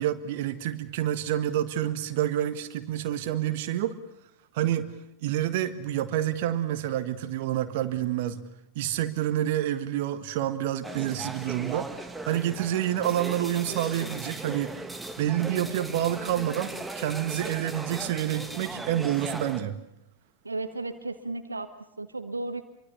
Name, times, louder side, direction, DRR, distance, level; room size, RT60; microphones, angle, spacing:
voice 1, 0.0-3.9 4.5-4.9 5.2-8.4 8.8-14.8 15.2-19.8, right 12 dB, 50° right, 10 dB, 1.6 m, -28 dB
sound 1, 10.8-19.6, right 2 dB, 10° right, 1.7 m, -38 dB
voice 2, 20.4-22.6, right 2 dB, 80° right, 9 dB, 1.3 m, -34 dB
26.0 x 23.5 x 6.9 m, 0.85 s
figure-of-eight pair, 90°, 0 cm